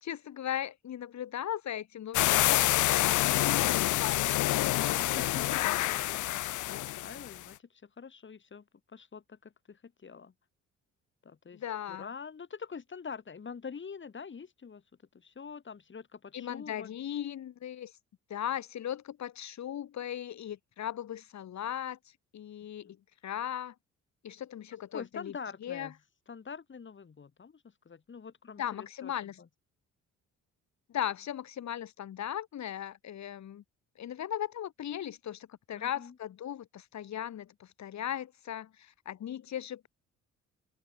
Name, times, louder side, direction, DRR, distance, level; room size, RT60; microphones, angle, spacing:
voice 1, 0.0-5.1 11.5-12.1 16.3-17.9 18.3-22.0 22.3-23.0 23.2-23.7 24.2-25.4 25.6-25.9 28.6-29.4 30.9-33.6 34.0-39.9, left 10 dB, 65° left, 3.5 m, -38 dB
sound 1, 2.1-7.4, left 16 dB, 80° left, 0.9 m, -27 dB
voice 2, 4.5-10.3 11.2-11.6 11.9-14.8 15.1-16.9 24.9-25.9 26.3-29.1 29.4-29.5 35.7-36.1, left 6 dB, 40° left, 5.4 m, -45 dB
open air
cardioid pair, 90°, 30 cm